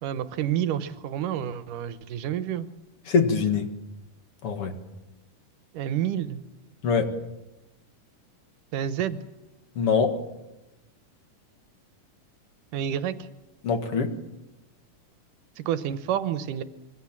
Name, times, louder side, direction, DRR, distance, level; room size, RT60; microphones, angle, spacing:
voice 1, 0.0-2.7 5.7-6.4 8.7-9.2 12.7-13.3 15.6-16.6, right 10 dB, 80° right, 13 dB, 2.6 m, -29 dB
voice 2, 3.1-3.7 4.4-4.8 6.8-7.1 9.8-10.2 13.6-14.1, left 5 dB, 50° left, 7 dB, 2.5 m, -23 dB
26.0 x 23.5 x 7.4 m, 0.96 s
omnidirectional pair, 3.7 m